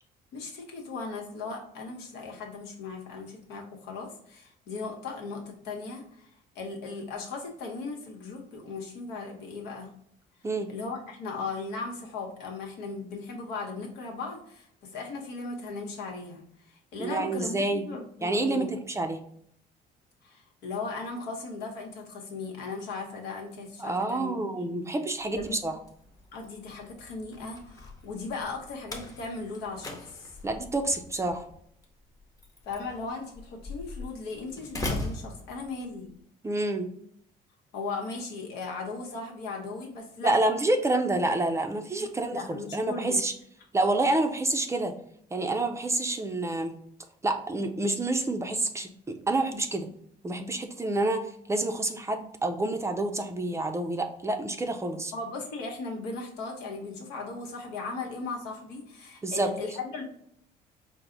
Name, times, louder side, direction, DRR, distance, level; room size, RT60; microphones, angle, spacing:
voice 1, 0.3-6.3 6.5-9.9 10.7-18.7 20.2-24.7 25.3-25.6 26.3-30.4 32.6-36.1 37.7-40.3 42.0-42.1 42.3-43.2 55.1-60.0, left 3 dB, 90° left, 1 dB, 1.0 m, -37 dB
voice 2, 17.0-17.9 18.2-19.2 23.8-25.7 30.4-31.4 36.4-36.9 40.2-43.3 43.7-44.9 45.3-46.7 47.2-49.9 50.2-55.1 59.2-59.5, right 2 dB, 15° right, 6 dB, 0.4 m, -28 dB
Slam, 25.2-36.1, left 2 dB, 20° left, 0.7 m, -41 dB
4.6 x 2.1 x 3.8 m, 0.67 s
cardioid pair, 110°, 17 cm